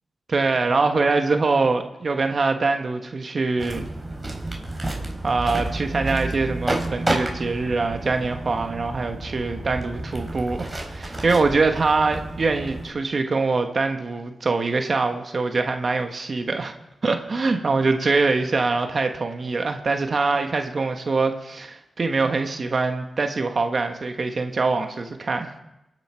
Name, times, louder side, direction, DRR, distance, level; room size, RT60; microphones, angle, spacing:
voice 1, 0.3-3.9 5.2-16.7 17.0-25.5, right 3 dB, 50° right, 5 dB, 1.3 m, -23 dB
sound 1, 3.6-12.9, right 2 dB, 20° right, 3.8 m, -31 dB
24.0 x 9.7 x 4.5 m, 0.91 s
cardioid pair, 70°, 0 cm